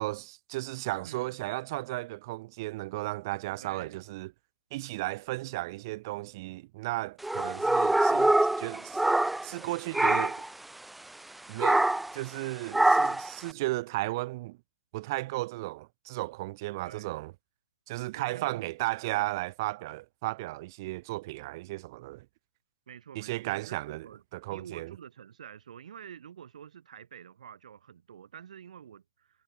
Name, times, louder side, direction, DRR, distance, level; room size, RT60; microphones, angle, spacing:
voice 1, 0.0-4.3 4.7-9.0 9.4-10.4 11.5-11.9 12.1-14.6 14.9-17.3 17.9-22.3 23.2-24.1 24.3-24.9, right 19 dB, 30° right, 1.8 m, -34 dB
voice 2, 1.1-1.4 3.6-4.0 16.8-17.1 18.1-18.7 22.9-24.2 24.5-29.4, right 8 dB, 55° right, 3.8 m, -48 dB
sound 1, 7.2-9.6 9.9-10.5 11.6-12.2 12.7-13.3, right 2 dB, ahead, 0.3 m, -24 dB
hypercardioid pair, 175°, 4 cm